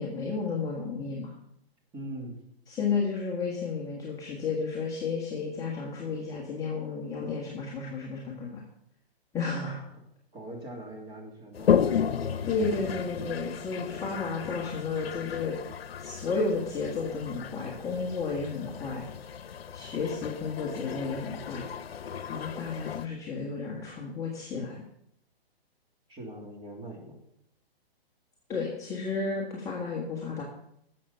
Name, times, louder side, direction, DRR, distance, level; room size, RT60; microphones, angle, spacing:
voice 1, 0.0-1.3 2.7-8.6 9.3-9.8 12.4-15.6 16.0-19.1 19.7-21.7 22.3-24.8 28.5-30.4, left 4 dB, 10° left, -4 dB, 1.6 m, -32 dB
voice 2, 1.9-2.4 9.6-9.8 10.3-11.8 26.1-27.2, right 1 dB, 15° right, 0 dB, 2.5 m, -41 dB
Toilet flush, 11.5-23.1, left 8 dB, 70° left, 0.9 m, -33 dB
12.5 x 7.7 x 5.6 m, 0.75 s
hypercardioid pair, 155°, 31 cm